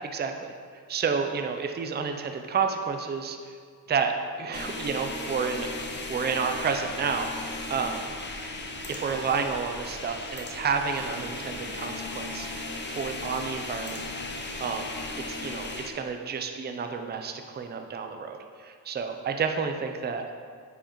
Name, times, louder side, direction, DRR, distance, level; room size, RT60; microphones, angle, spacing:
voice 1, 0.1-0.5 0.9-3.4 3.9-5.7 6.1-7.3 7.7-8.1 8.9-12.5 12.9-14.0 14.6-14.9 15.2-20.2, right 5 dB, 25° right, 5 dB, 0.5 m, -30 dB
sound 1, 4.5-15.9, left 2 dB, 25° left, 0.6 m, -36 dB
8.6 x 4.9 x 3.0 m, 2.1 s
cardioid pair, 85°, 43 cm